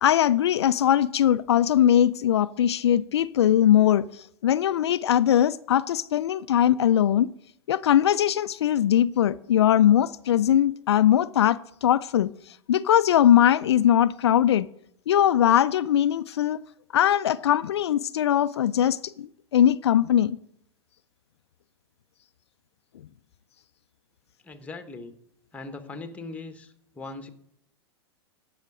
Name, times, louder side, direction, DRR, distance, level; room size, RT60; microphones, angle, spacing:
voice 1, 0.0-7.3 7.7-14.7 15.1-16.6 16.9-20.4, left 10 dB, 75° left, 0.4 m, -21 dB
voice 2, 24.4-25.1 25.5-27.3, left 3 dB, 10° left, 1.2 m, -40 dB
16.0 x 5.7 x 5.0 m
hypercardioid pair, 105°, 14 cm